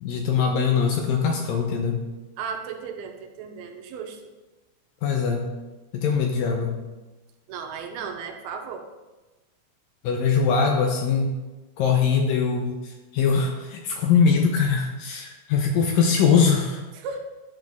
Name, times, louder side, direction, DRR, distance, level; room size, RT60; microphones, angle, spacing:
voice 1, 0.0-2.0 5.0-5.5 5.9-6.7 10.0-11.3 11.8-16.8, left 6 dB, 80° left, 3 dB, 2.1 m, -22 dB
voice 2, 2.4-4.3 7.5-8.9 16.9-17.2, right 6 dB, 80° right, 5 dB, 2.5 m, -35 dB
10.5 x 6.1 x 3.5 m, 1.1 s
omnidirectional pair, 4.5 m